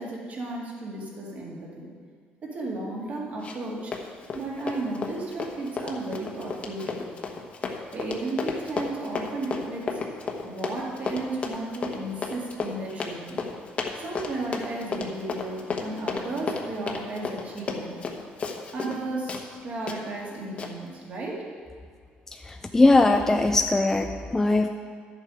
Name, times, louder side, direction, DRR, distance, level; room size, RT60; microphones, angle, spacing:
voice 1, 0.0-1.9 2.4-4.0 4.3-7.1 7.9-10.0 10.4-13.4 14.0-18.0 18.7-21.4, right 2 dB, 45° right, -3 dB, 2.3 m, -34 dB
Run, 3.4-3.7 3.9-19.0 19.3-19.4 19.9-20.0 20.6-20.7, left 5 dB, 35° left, 1.1 m, -33 dB
voice 2, 22.3-24.7, left 2 dB, 10° left, 4 dB, 0.4 m, -20 dB
11.5 x 7.5 x 5.0 m, 2.1 s
cardioid pair, 135°, 4 cm